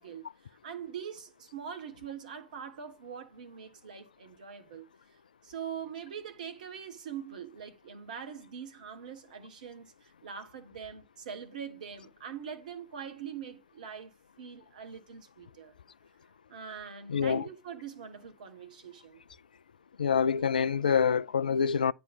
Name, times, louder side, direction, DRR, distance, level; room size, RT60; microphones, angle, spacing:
voice 1, 0.0-4.9 5.4-15.7 16.5-19.2, right 7 dB, 70° right, 1.5 m, -43 dB
voice 2, 17.1-17.5 20.0-21.9, left 6 dB, 80° left, 0.4 m, -26 dB
9.5 x 3.3 x 5.5 m
figure-of-eight pair, 80°, 4 cm